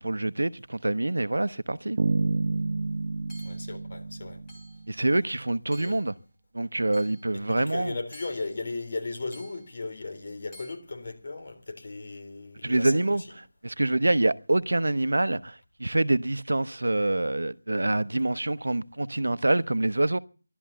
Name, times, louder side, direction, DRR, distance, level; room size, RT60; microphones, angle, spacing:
voice 1, 0.0-2.0 4.9-6.1 6.5-7.9 12.6-13.2 13.6-20.2, right 2 dB, 85° right, 0.9 m, -26 dB
sound 1, 2.0-5.0, right 3 dB, 45° right, 1.1 m, -29 dB
Hammer / Chink clink, 3.3-3.7 4.5-4.9 5.7-6.1 6.9-7.3 8.1-8.6 9.3-9.7 10.5-10.8, equal, 15° left, 2.8 m, -51 dB
voice 2, 3.4-4.4 5.7-6.0 7.5-13.4, left 3 dB, 50° left, 3.7 m, -36 dB
15.5 x 12.0 x 6.8 m
figure-of-eight pair, 170°, 0 cm